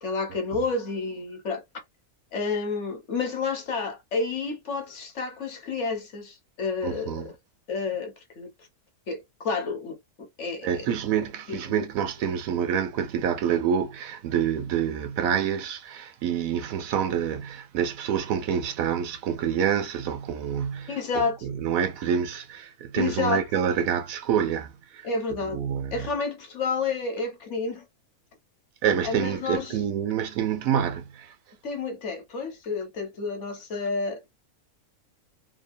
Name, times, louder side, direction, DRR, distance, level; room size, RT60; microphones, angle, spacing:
voice 1, 0.0-1.6 2.3-7.3 7.7-8.5 9.1-10.9 11.2-11.9 20.9-21.4 22.9-23.4 25.0-25.6 25.9-27.8 29.0-29.8 31.6-34.2, left 4 dB, 60° left, 1.0 m, -30 dB
voice 2, 6.8-7.3 10.6-25.1 25.4-26.1 28.8-31.3, right 8 dB, 75° right, 0.9 m, -27 dB
2.9 x 2.1 x 2.5 m
omnidirectional pair, 1.6 m